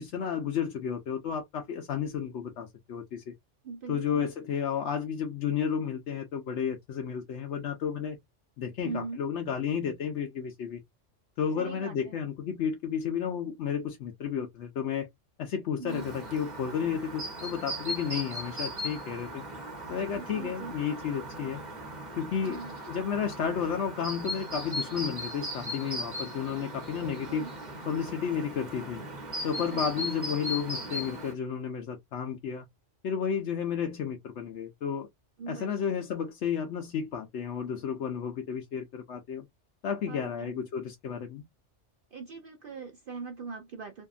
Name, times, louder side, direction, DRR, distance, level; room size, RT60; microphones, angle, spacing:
voice 1, 0.0-3.3 3.9-8.2 8.6-10.8 11.4-15.1 15.4-19.4 19.9-21.6 22.2-27.5 27.9-29.0 29.4-32.7 33.0-35.1 35.5-39.4 39.8-41.4, left 7 dB, 70° left, 0.9 m, -32 dB
voice 2, 3.6-4.3 8.8-9.2 11.6-12.2 15.8-16.1 20.1-20.7 22.4-22.8 27.0-27.5 29.5-29.8 35.4-35.9 40.1-40.5 42.1-44.1, right 5 dB, 55° right, 0.7 m, -41 dB
Chirp tweet, 15.9-31.3, equal, 40° right, 1.1 m, -38 dB
2.7 x 2.5 x 2.4 m
omnidirectional pair, 1.3 m